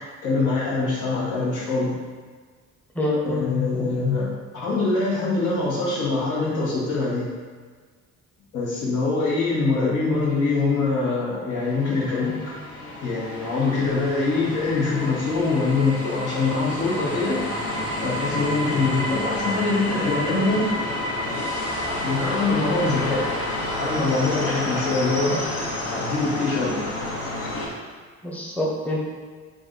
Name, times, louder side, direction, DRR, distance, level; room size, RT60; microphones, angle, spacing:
voice 1, 0.2-2.0 3.2-7.3 8.5-12.5 13.0-17.4 18.0-20.7 22.0-23.3 23.5-25.4 25.8-26.8, left 3 dB, 80° left, -7 dB, 1.4 m, -24 dB
voice 2, 2.9-3.4 3.7-3.9 28.2-29.0, left 1 dB, 5° left, -3 dB, 0.7 m, -26 dB
sound 1, 11.6-27.7, left 1 dB, 50° left, 1.0 m, -29 dB
3.9 x 2.6 x 3.9 m, 1.5 s
cardioid pair, 90°, 30 cm